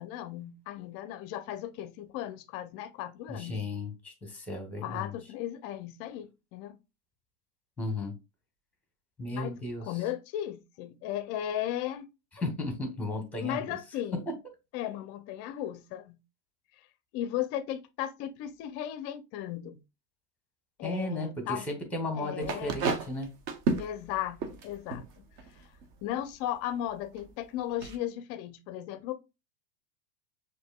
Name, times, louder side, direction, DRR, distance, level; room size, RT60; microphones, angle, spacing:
voice 1, 0.0-3.6 4.8-6.8 9.3-9.5 9.8-12.1 13.4-14.3 14.7-16.2 17.1-19.8 20.8-21.7 22.1-22.8 23.8-25.3 26.0-29.1, left 12 dB, 35° left, 0.5 m, -36 dB
voice 2, 3.3-5.1 7.8-8.1 9.2-9.8 12.4-13.8 14.1-14.2 20.8-23.3, left 2 dB, 5° left, 1.0 m, -35 dB
sound 1, 22.4-26.3 27.2-27.3 27.6-28.0, right 4 dB, 40° right, 0.8 m, -32 dB
6.3 x 2.7 x 2.2 m
supercardioid pair, 125°, 47 cm